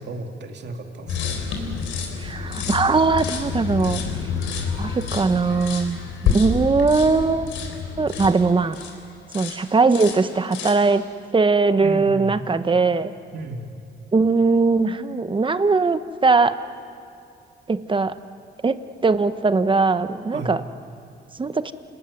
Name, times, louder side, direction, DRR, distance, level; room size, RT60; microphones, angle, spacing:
voice 1, 0.0-1.4 11.8-12.4 13.3-13.7 20.3-20.5, right 2 dB, 60° right, 3 dB, 2.8 m, -33 dB
sound 1, 1.1-9.0 9.3-9.6 9.9-10.9, left 6 dB, 85° left, 4.0 m, -28 dB
voice 2, 2.2-4.0 4.8-6.0 6.3-7.5 8.0-8.8 9.3-11.0 11.3-13.1 14.1-16.6 17.7-18.1 18.6-20.6 21.4-21.7, right 4 dB, 25° right, 11 dB, 1.1 m, -20 dB
28.0 x 19.0 x 9.6 m, 2.5 s
cardioid pair, 90°, 20 cm